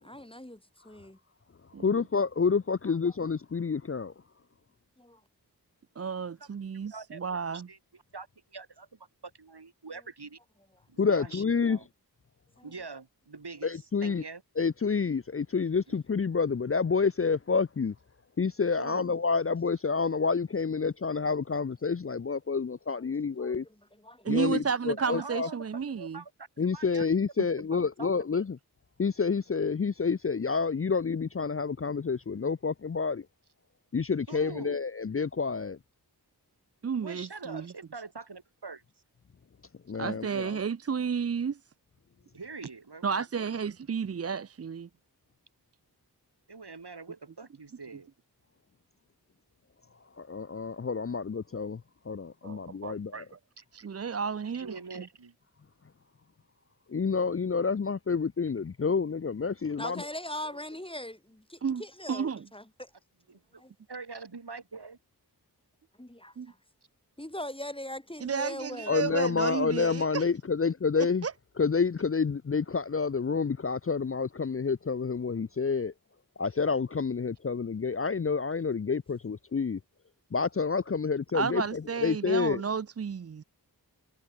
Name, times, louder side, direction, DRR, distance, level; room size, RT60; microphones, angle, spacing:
voice 1, 0.0-1.2 3.0-3.1 5.0-5.2 12.6-12.7 20.7-20.8 23.0-24.3 59.8-62.6 66.0-66.6 67.2-68.9, left 1 dB, 15° left, 3.5 m, -41 dB
voice 2, 1.8-4.1 11.0-11.8 13.6-14.2 14.6-17.9 18.4-23.6 24.3-25.5 26.6-28.6 29.0-33.2 33.9-35.8 39.9-40.5 50.2-51.8 52.1-53.2 56.9-60.0 68.9-71.3 71.6-75.9 76.4-79.8 80.3-81.6 82.0-82.6, left 5 dB, 35° left, 0.5 m, -28 dB
voice 3, 6.0-7.7 24.2-26.2 26.9-27.1 36.8-37.7 40.0-41.6 43.0-44.9 52.4-53.4 53.7-55.1 61.6-61.8 62.1-62.5 66.4-66.5 68.2-70.3 71.2-71.3 81.3-83.4, right 6 dB, 40° right, 0.5 m, -32 dB
voice 4, 6.9-10.4 10.9-11.9 12.6-14.4 15.9-16.0 18.8-19.1 24.7-27.0 27.7-28.4 34.3-34.8 37.0-38.8 42.3-43.1 43.4-43.5 46.5-48.1 53.6-53.7 54.5-55.3 63.3-63.4 63.9-65.0, right 4 dB, 80° right, 7.7 m, -44 dB
wide cardioid pair, 45°, 39 cm